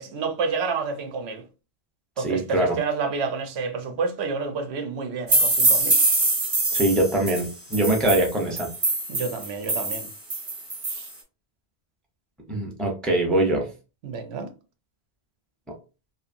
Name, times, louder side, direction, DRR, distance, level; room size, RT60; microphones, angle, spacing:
voice 1, 0.0-1.4 2.2-6.0 9.1-10.1 10.9-11.1 14.0-14.5, right 4 dB, 90° right, 0.9 m, -29 dB
voice 2, 2.2-2.8 6.7-8.7 12.5-13.7, right 1 dB, ahead, 0.4 m, -23 dB
sound 1, 5.3-11.1, right 2 dB, 35° right, 0.9 m, -24 dB
2.7 x 2.4 x 2.5 m
omnidirectional pair, 1.1 m